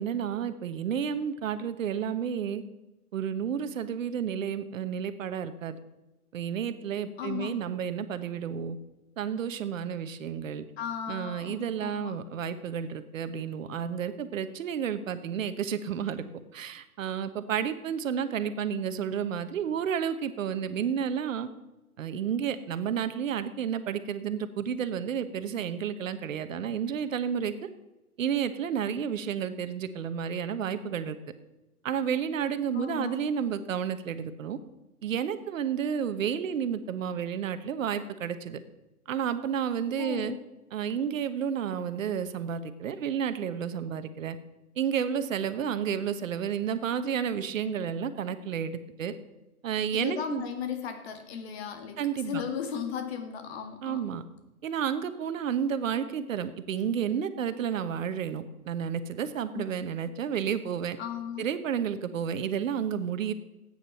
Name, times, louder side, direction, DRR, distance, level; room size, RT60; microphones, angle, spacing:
voice 1, 0.0-2.6 3.1-5.8 6.3-8.8 9.2-10.6 11.1-16.2 16.5-21.5 22.0-27.7 28.2-31.2 31.8-34.6 35.0-38.6 39.1-40.4 40.7-44.4 44.8-49.1 49.6-50.4 52.0-52.4 53.8-54.2 54.6-61.0 61.4-63.3, right 8 dB, 60° right, 12 dB, 1.2 m, -31 dB
voice 2, 7.2-7.6 10.8-12.1 32.7-33.2 40.0-40.4 49.9-52.0 52.3-54.0 59.5-59.9 61.0-61.5, left 8 dB, 45° left, 6 dB, 2.0 m, -36 dB
13.5 x 9.2 x 5.6 m, 1.0 s
hypercardioid pair, 140°, 44 cm